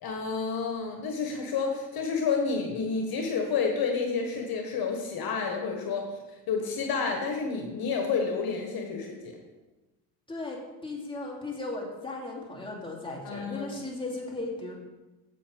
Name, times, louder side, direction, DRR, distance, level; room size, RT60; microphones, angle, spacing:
voice 1, 0.0-6.1 6.5-9.4 13.2-13.8, left 5 dB, 65° left, 2 dB, 1.4 m, -30 dB
voice 2, 10.3-14.7, left 2 dB, 15° left, -3 dB, 2.6 m, -36 dB
7.8 x 7.1 x 4.6 m, 1.1 s
supercardioid pair, 75°, 39 cm